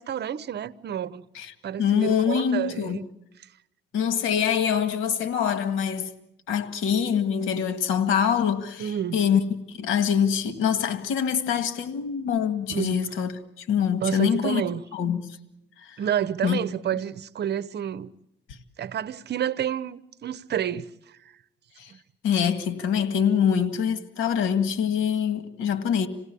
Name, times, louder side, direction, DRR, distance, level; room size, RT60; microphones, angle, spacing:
voice 1, 0.0-1.2 1.6-3.0 8.8-9.2 12.7-13.0 14.0-14.8 16.0-18.1 18.8-21.2 21.9-22.0, right 9 dB, 55° right, 0.9 m, -29 dB
voice 2, 1.8-3.0 3.9-6.1 6.5-9.4 9.7-13.3 13.6-14.6 14.9-15.4 15.8-16.0 16.4-16.6 21.8-21.9 22.2-26.1, left 8 dB, 90° left, 1.9 m, -24 dB
27.5 x 17.5 x 8.4 m
cardioid pair, 90°, 20 cm